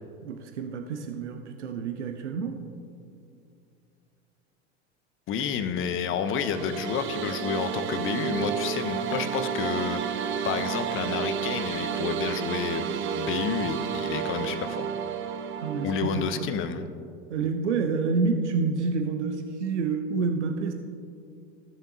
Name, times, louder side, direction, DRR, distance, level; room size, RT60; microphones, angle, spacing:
voice 1, 0.2-2.6 15.6-16.5 17.3-20.7, right 4 dB, 85° right, 5 dB, 0.7 m, -28 dB
voice 2, 5.3-12.9 13.1-14.9 15.8-16.8, left 7 dB, 35° left, 9 dB, 0.7 m, -30 dB
sound 1, 6.3-16.5, right 8 dB, 35° right, 0.6 m, -31 dB
14.5 x 7.0 x 2.8 m, 2.5 s
hypercardioid pair, 85°, 34 cm